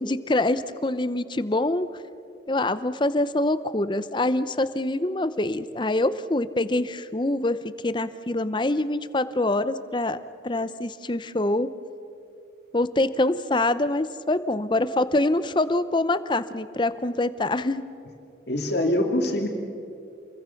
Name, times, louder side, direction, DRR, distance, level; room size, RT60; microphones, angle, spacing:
voice 1, 0.0-1.9 2.5-7.6 7.8-10.2 10.4-11.7 12.7-17.8, left 2 dB, 25° left, 14 dB, 0.7 m, -25 dB
voice 2, 18.5-19.5, left 1 dB, 65° left, 2 dB, 2.6 m, -24 dB
28.5 x 22.0 x 5.9 m, 2.7 s
head